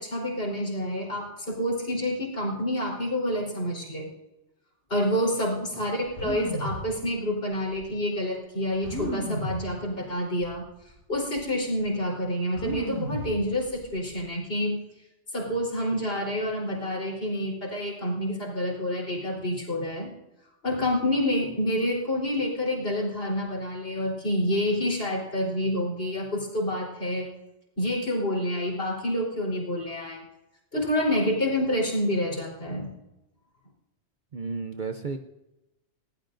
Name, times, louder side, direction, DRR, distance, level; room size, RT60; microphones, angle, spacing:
voice 1, 0.0-4.1 4.9-10.7 11.1-14.8 15.3-20.1 20.6-27.3 27.8-30.2 30.7-32.9, left 1 dB, 50° left, -3 dB, 4.2 m, -28 dB
sound 1, 6.1-6.8 7.7-7.8 8.8-9.6 10.4-10.6 10.9-11.4 12.6-13.3 13.6-14.2, right 1 dB, 65° right, 6.3 m, -33 dB
voice 2, 34.3-35.2, right 4 dB, 45° right, 6 dB, 0.7 m, -33 dB
20.5 x 16.5 x 2.6 m, 0.96 s
omnidirectional pair, 1.3 m